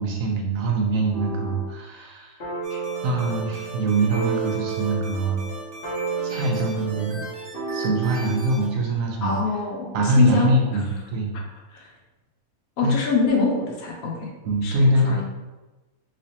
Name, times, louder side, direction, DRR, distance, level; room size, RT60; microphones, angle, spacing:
voice 1, 0.0-2.4 2.7-5.4 6.2-7.2 7.7-9.3 9.9-11.4 12.8-12.9 14.4-15.2, right 1 dB, 70° right, 0 dB, 1.0 m, -23 dB
sound 1, 1.1-1.8 2.4-8.6, right 4 dB, 45° left, 1.0 m, -31 dB
sound 2, 2.6-8.7, right 1 dB, 50° right, 0.7 m, -40 dB
voice 2, 9.2-10.5 11.7-11.9 12.8-14.3 14.6-15.2, left 4 dB, 75° left, -1 dB, 1.1 m, -24 dB
3.3 x 3.2 x 2.7 m, 1.1 s
omnidirectional pair, 1.6 m